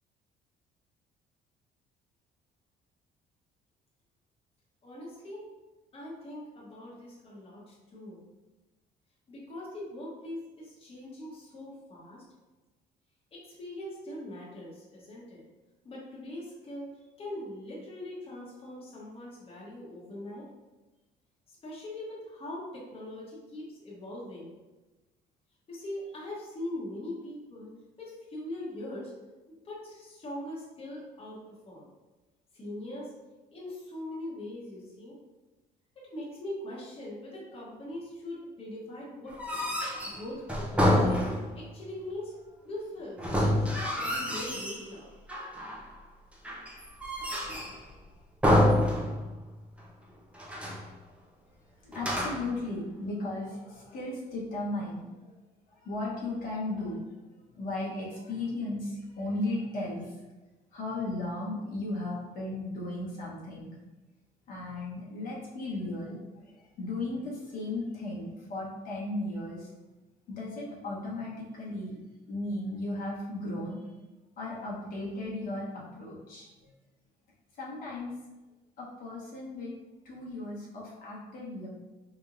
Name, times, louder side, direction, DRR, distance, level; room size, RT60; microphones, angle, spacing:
voice 1, 4.8-5.4 5.9-8.2 9.3-12.2 13.3-15.4 15.8-16.9 17.2-20.4 21.5-24.5 25.7-27.7 28.0-29.1 29.5-31.8 32.5-33.1 33.5-35.2 36.0-39.4 40.0-42.3 42.6-45.1, left 1 dB, 35° left, -5 dB, 1.0 m, -41 dB
sound 1, 39.3-41.7 43.2-44.9 45.3-45.9 46.4-47.8 48.4-49.5 49.8-49.9 50.3-50.9 51.9-52.6, left 1 dB, 5° right, 0.6 m, -28 dB
voice 2, 51.8-55.3 55.8-57.0 57.6-60.1 60.7-63.7 64.5-66.2 66.5-69.7 70.3-72.0 72.3-73.8 74.4-76.5 77.6-78.1 78.8-79.7 80.0-81.7, left 2 dB, 60° left, -6 dB, 1.0 m, -36 dB
3.4 x 3.0 x 2.5 m, 1.1 s
cardioid pair, 110°, 17 cm